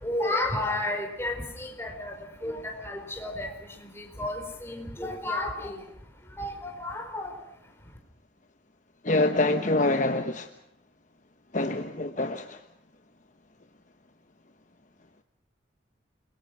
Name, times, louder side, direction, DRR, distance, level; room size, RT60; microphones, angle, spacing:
voice 1, 0.0-2.1 2.4-3.5 4.0-5.8 6.4-7.3, left 1 dB, 15° left, 4.7 m, -32 dB
voice 2, 9.0-10.5 11.5-12.6, left 2 dB, 40° left, 1.1 m, -25 dB
29.0 x 22.0 x 6.2 m
head